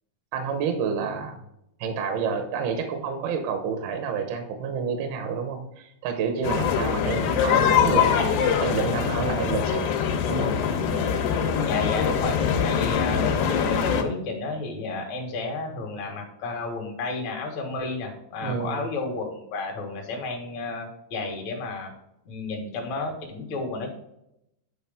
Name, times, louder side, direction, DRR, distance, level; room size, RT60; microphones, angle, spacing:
voice 1, 0.3-1.4 1.8-9.9 10.3-10.5 12.8-13.0 18.4-18.9, right 6 dB, 75° right, 5 dB, 2.3 m, -29 dB
sound 1, 6.4-14.0, left 7 dB, 75° left, 2.7 m, -23 dB
voice 2, 11.7-21.9 22.3-23.9, left 3 dB, 60° left, 1 dB, 2.0 m, -32 dB
10.0 x 4.7 x 3.5 m, 0.81 s
omnidirectional pair, 5.5 m